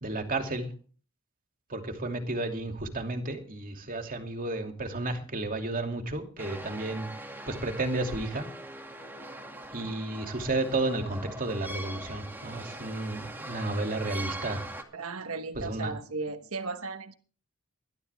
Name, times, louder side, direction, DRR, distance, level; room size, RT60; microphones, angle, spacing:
voice 1, 0.0-0.7 1.7-7.1 7.5-8.5 9.7-14.6 15.6-15.9, right 2 dB, 40° right, 4 dB, 2.7 m, -32 dB
sound 1, 6.4-14.8, right 1 dB, 10° right, 2.2 m, -42 dB
voice 2, 14.9-17.1, right 3 dB, 80° right, 8 dB, 1.3 m, -36 dB
21.5 x 12.5 x 3.5 m, 0.40 s
head